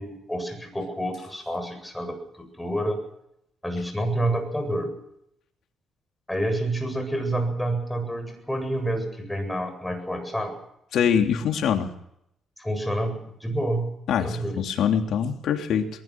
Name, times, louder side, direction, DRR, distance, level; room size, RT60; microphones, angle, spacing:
voice 1, 0.0-3.0 3.6-4.9 6.3-10.6 12.6-13.9 14.2-14.6, right 1 dB, 5° left, 6 dB, 7.9 m, -28 dB
voice 2, 10.9-11.9 14.1-15.9, left 8 dB, 75° left, 4 dB, 3.2 m, -24 dB
23.0 x 20.5 x 6.1 m, 0.77 s
cardioid pair, 90°, 0 cm